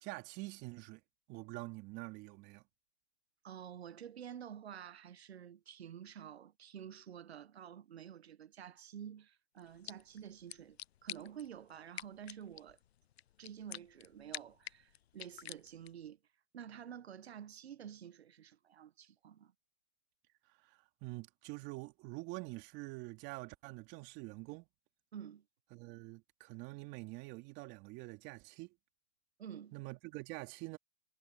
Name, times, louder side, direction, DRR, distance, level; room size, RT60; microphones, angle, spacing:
voice 1, 0.0-1.0 1.3-2.6 20.6-24.7 25.7-28.7 29.7-30.8, right 23 dB, 35° right, 3.1 m, -46 dB
voice 2, 3.4-12.8 13.4-16.2 16.5-19.5 25.1-25.5 29.4-29.7, right 9 dB, 80° right, 1.6 m, -50 dB
sound 1, 9.6-16.1, left 11 dB, 75° left, 0.7 m, -51 dB
hypercardioid pair, 135°, 31 cm